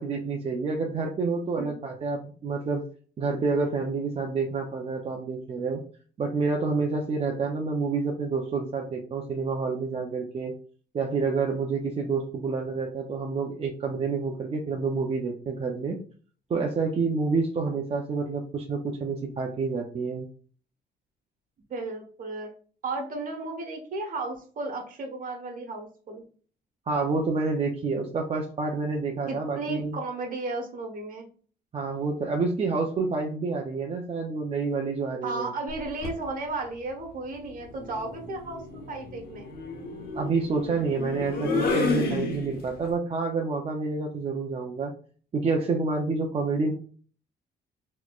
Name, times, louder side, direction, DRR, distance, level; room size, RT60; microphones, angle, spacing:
voice 1, 0.0-2.8 3.2-5.8 6.2-10.5 10.9-16.0 16.5-20.3 26.9-30.0 31.7-35.5 40.1-44.9 45.3-46.7, right 4 dB, 35° right, 0 dB, 0.5 m, -28 dB
voice 2, 21.7-22.5 22.8-26.2 29.3-31.3 35.2-39.5, right 2 dB, 55° right, 2 dB, 1.2 m, -34 dB
sound 1, 35.7-36.2 37.6-42.9, left 3 dB, 65° left, 1.0 m, -31 dB
4.0 x 3.1 x 2.4 m, 0.43 s
cardioid pair, 120°, 17 cm